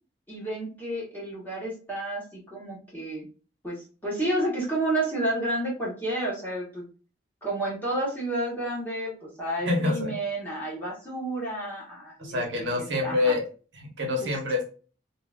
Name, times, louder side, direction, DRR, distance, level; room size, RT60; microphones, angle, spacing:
voice 1, 0.3-3.2 3.6-6.9 7.4-13.3 14.2-14.3, right 1 dB, 10° left, -6 dB, 1.3 m, -31 dB
voice 2, 9.6-10.1 12.2-13.4 13.7-14.7, left 2 dB, 80° right, 0 dB, 1.0 m, -26 dB
2.8 x 2.6 x 2.4 m, 0.37 s
head